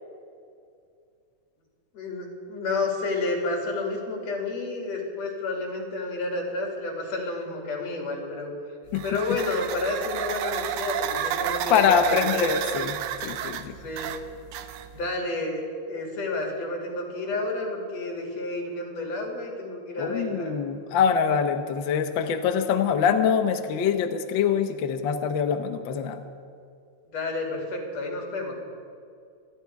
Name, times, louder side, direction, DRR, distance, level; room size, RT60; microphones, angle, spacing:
voice 1, 1.9-8.5 9.0-12.5 13.8-14.1 14.9-15.6 15.9-20.5 27.1-28.5, left 2 dB, 60° left, 0 dB, 3.8 m, -30 dB
sound 1, 8.9-15.1, right 10 dB, 85° right, 2.1 m, -31 dB
voice 2, 11.7-12.9 13.2-13.8 20.0-26.2, left 7 dB, 80° left, 6 dB, 1.0 m, -24 dB
27.0 x 11.0 x 4.7 m, 2.4 s
omnidirectional pair, 3.4 m